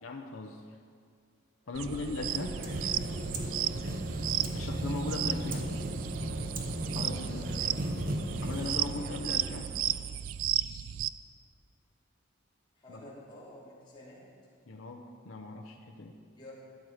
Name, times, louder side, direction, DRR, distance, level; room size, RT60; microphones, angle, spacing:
voice 1, 0.0-0.7 1.7-2.6 4.5-5.7 6.9-7.5 8.4-9.7 12.9-13.1 14.7-16.2, left 2 dB, 80° left, 2 dB, 0.8 m, -39 dB
voice 2, 1.6-2.4 2.9-3.4 3.8-4.0 6.9-7.8 12.8-14.3 16.4-16.5, left 1 dB, 25° left, -8 dB, 3.4 m, -51 dB
sound 1, 1.7-11.1, right 12 dB, 80° right, 0.3 m, -35 dB
sound 2, 1.9-10.2, right 1 dB, 45° right, 1.1 m, -36 dB
13.0 x 9.5 x 5.0 m, 2.1 s
head